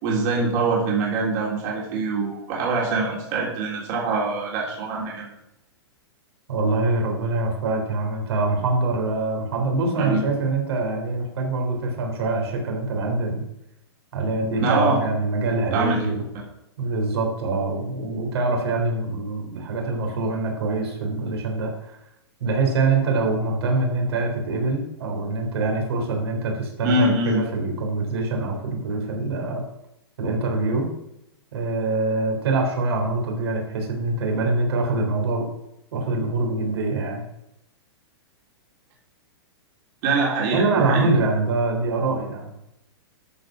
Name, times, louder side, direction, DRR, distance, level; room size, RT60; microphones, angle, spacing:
voice 1, 0.0-5.3 10.0-10.2 14.6-15.0 15.7-16.0 26.8-27.4 40.0-41.1, right 3 dB, 40° right, -3 dB, 3.3 m, -24 dB
voice 2, 6.5-13.5 14.1-16.2 16.8-22.0 22.4-29.6 30.2-30.9 31.5-35.5 35.9-37.2 40.5-42.5, right 3 dB, 70° right, 1 dB, 3.7 m, -24 dB
13.0 x 5.3 x 6.2 m, 0.85 s
hypercardioid pair, 145°, 14 cm